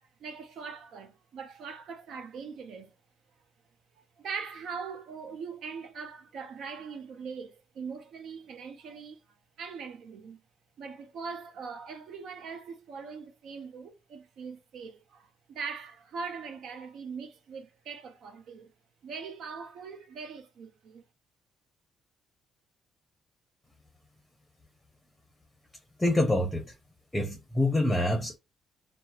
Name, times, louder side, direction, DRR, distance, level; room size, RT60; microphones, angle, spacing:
voice 1, 0.0-3.0 4.0-9.2 9.6-10.4 10.8-18.7 19.0-21.0, right 5 dB, 75° right, 0.6 m, -41 dB
voice 2, 26.0-26.7 27.1-28.4, left 1 dB, 10° left, 0.7 m, -26 dB
2.9 x 2.0 x 2.3 m
cardioid pair, 90°, 0 cm